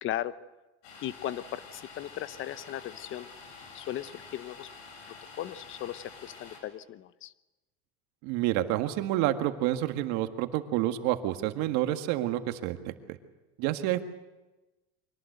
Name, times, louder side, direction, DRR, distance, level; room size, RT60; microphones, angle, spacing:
voice 1, 0.0-0.3 1.0-3.3 3.7-4.7 5.4-7.3, left 12 dB, 40° left, 16 dB, 0.8 m, -37 dB
Domestic sounds home sounds, 0.8-6.6, left 4 dB, 80° left, 7.3 m, -48 dB
voice 2, 8.2-12.9 13.6-14.0, right 14 dB, 65° right, 8 dB, 1.8 m, -28 dB
24.5 x 18.5 x 8.1 m, 1.1 s
supercardioid pair, 135°, 30 cm